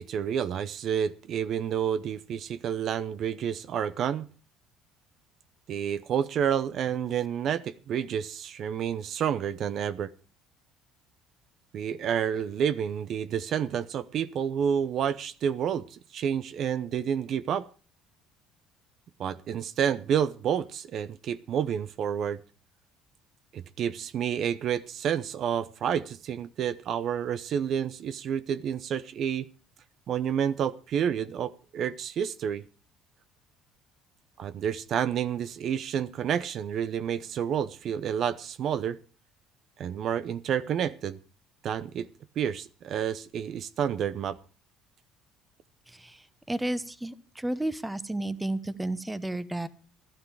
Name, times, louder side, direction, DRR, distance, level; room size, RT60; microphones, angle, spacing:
voice 1, 0.0-4.3 5.7-10.1 11.7-17.7 19.2-22.4 23.5-29.5 30.1-32.6 34.4-39.0 39.8-41.2 41.6-42.1 42.4-44.4, right 8 dB, 55° right, 0.7 m, -29 dB
voice 2, 45.9-49.7, right 1 dB, 10° right, 1.1 m, -32 dB
15.5 x 12.0 x 4.8 m
cardioid pair, 105°, 0 cm